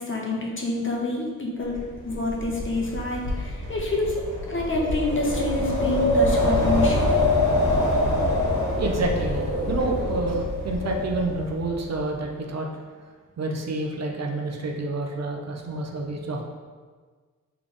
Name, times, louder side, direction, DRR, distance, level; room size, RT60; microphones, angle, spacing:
voice 1, 0.0-1.7 2.0-4.2 4.5-7.2, left 2 dB, 40° left, -2 dB, 0.9 m, -27 dB
Wind, 1.7-11.8, left 1 dB, 65° left, 1.4 m, -25 dB
voice 2, 8.8-12.7 13.4-16.4, right 2 dB, 55° right, 1 dB, 0.6 m, -29 dB
4.0 x 3.4 x 3.3 m, 1.5 s
cardioid pair, 75°, 32 cm